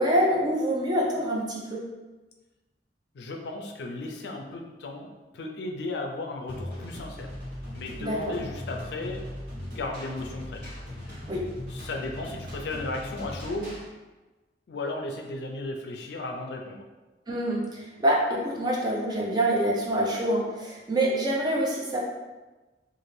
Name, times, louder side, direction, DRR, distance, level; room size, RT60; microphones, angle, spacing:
voice 1, 0.0-1.8 8.0-8.3 11.3-11.4 17.3-22.0, right 1 dB, 25° right, -4 dB, 0.5 m, -26 dB
voice 2, 3.1-7.3 7.7-9.2 9.6-10.7 11.1-11.2 11.7-13.8 14.7-16.8, left 2 dB, 75° left, 2 dB, 0.4 m, -35 dB
sound 1, 6.5-13.9, left 1 dB, 55° right, 1.4 m, -39 dB
2.6 x 2.5 x 3.1 m, 1.2 s
head